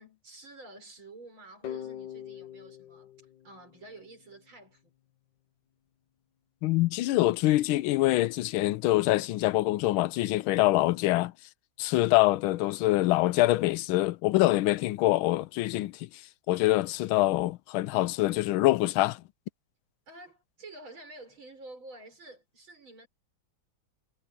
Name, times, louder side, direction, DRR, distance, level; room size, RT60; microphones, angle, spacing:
voice 1, 0.0-3.1 3.4-4.9 20.1-23.1, right 2 dB, 80° right, 6.7 m, -49 dB
sound 1, 1.6-4.4, left 10 dB, 65° left, 1.6 m, -43 dB
voice 2, 6.6-11.3 11.8-16.1 16.5-19.2, left 17 dB, 85° left, 1.4 m, -25 dB
omnidirectional pair, 2.2 m